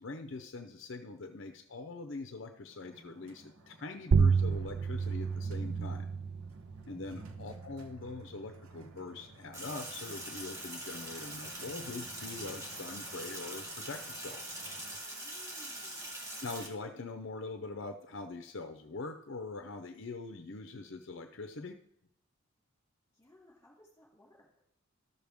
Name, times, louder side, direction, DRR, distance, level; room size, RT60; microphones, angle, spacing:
voice 1, 0.0-6.1 6.9-14.4 16.4-21.8, left 3 dB, 60° left, 7 dB, 0.6 m, -43 dB
sound 1, 2.7-15.0, right 2 dB, 80° right, 1.0 m, -53 dB
sound 2, 4.1-9.2, right 5 dB, 50° right, 0.3 m, -31 dB
Sink (filling or washing), 9.5-16.7, right 1 dB, 15° right, 1.6 m, -43 dB
voice 2, 15.1-16.1 23.1-24.6, left 1 dB, 15° left, -3 dB, 3.3 m, -61 dB
13.0 x 6.5 x 3.5 m, 0.75 s
head